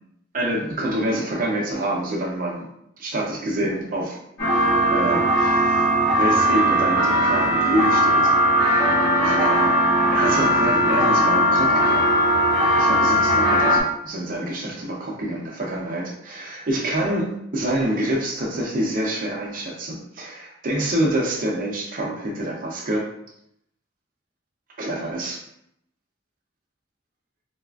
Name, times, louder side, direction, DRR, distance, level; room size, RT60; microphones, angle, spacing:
voice 1, 0.3-2.7 3.0-4.2 4.9-5.9 6.2-8.3 9.2-9.8 10.1-12.1 12.8-23.1 24.8-25.4, right 1 dB, 45° right, -2 dB, 0.6 m, -26 dB
sound 1, 4.4-13.8, equal, 55° left, 1.4 m, -19 dB
4.0 x 2.4 x 2.3 m, 0.74 s
head